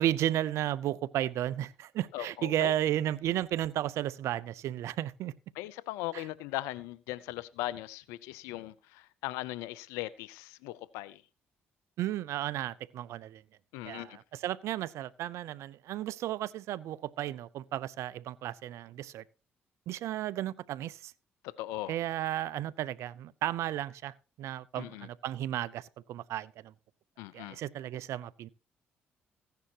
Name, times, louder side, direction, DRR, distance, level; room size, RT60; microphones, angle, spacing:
voice 1, 0.0-5.3 6.1-6.2 12.0-13.4 13.8-19.2 19.9-21.1 21.9-26.7 27.3-28.5, right 12 dB, 75° right, 0.6 m, -33 dB
voice 2, 2.1-2.7 5.6-11.2 13.7-14.2 21.4-22.0 24.8-25.1 27.2-27.6, left 16 dB, 90° left, 0.5 m, -39 dB
15.5 x 10.5 x 2.8 m
supercardioid pair, 60°, 5 cm